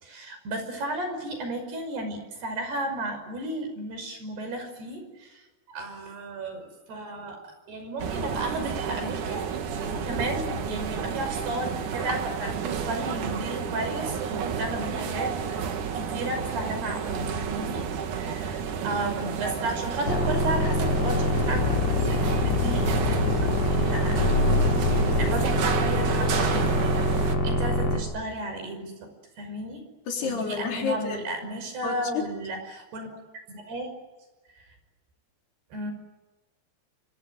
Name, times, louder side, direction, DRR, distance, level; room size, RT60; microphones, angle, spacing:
voice 1, 0.0-5.4 5.7-9.5 9.9-15.6 16.0-17.9 18.1-18.6 18.8-29.8 30.2-33.1 33.5-33.9 34.6-34.7 35.7-35.9, right 1 dB, 70° right, 7 dB, 7.6 m, -34 dB
sound 1, 8.0-27.4, right 6 dB, 55° right, 3.0 m, -31 dB
sound 2, 20.1-28.0, left 2 dB, 40° left, 4.5 m, -24 dB
voice 2, 30.1-31.3 31.8-32.2, left 5 dB, 70° left, 2 dB, 5.8 m, -30 dB
27.0 x 25.5 x 7.9 m, 1.2 s
omnidirectional pair, 4.8 m